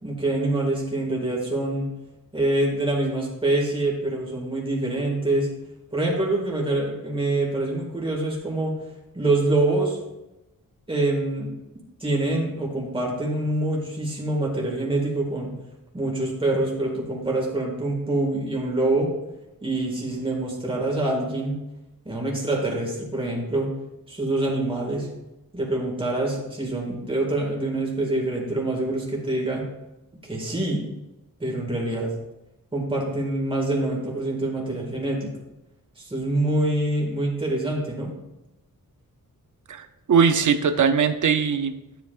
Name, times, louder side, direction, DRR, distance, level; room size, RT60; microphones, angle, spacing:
voice 1, 0.0-1.9 2.3-5.5 5.9-8.7 9.1-10.0 10.9-11.5 12.0-15.5 15.9-19.1 19.6-21.6 22.1-23.7 24.1-25.1 25.5-29.6 30.2-30.8 31.4-32.1 32.7-35.3 36.0-38.1, right 2 dB, 15° right, -2 dB, 2.0 m, -25 dB
voice 2, 39.7-41.7, right 6 dB, 60° right, 9 dB, 0.7 m, -20 dB
12.0 x 8.0 x 2.5 m, 0.96 s
wide cardioid pair, 165°, 34 cm